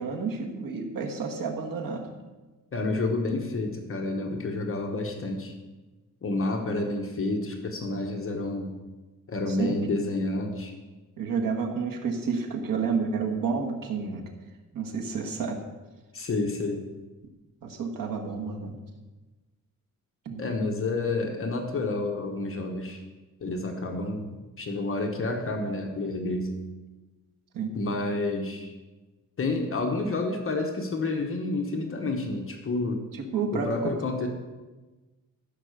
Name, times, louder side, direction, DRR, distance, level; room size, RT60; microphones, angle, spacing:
voice 1, 0.0-2.1 9.5-9.8 11.2-14.3 14.7-15.6 17.6-18.7 20.3-20.5 27.5-27.8 33.1-33.9, right 5 dB, 85° right, 2 dB, 1.7 m, -30 dB
voice 2, 2.7-5.5 6.2-8.7 9.3-10.7 16.1-16.8 20.4-23.0 23.4-24.3 24.6-26.5 27.7-28.7 29.4-33.0 33.5-34.3, left 2 dB, 40° left, 3 dB, 1.2 m, -29 dB
14.5 x 5.6 x 6.7 m, 1.2 s
wide cardioid pair, 165°, 32 cm